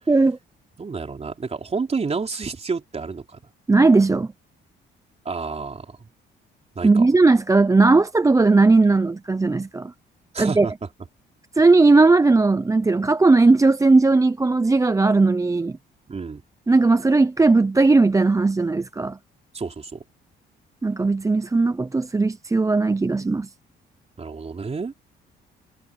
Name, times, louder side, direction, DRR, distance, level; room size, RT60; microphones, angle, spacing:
voice 1, 0.1-0.4 3.7-4.3 6.8-9.9 10.4-10.7 11.6-15.8 16.7-19.2 20.8-23.5, right 3 dB, 15° right, 0.6 m, -17 dB
voice 2, 0.8-3.4 5.3-6.0 6.8-7.1 10.3-10.7 16.1-16.4 19.5-20.0 24.2-24.9, right 4 dB, 30° right, 3.5 m, -29 dB
cardioid pair, 90°, 20 cm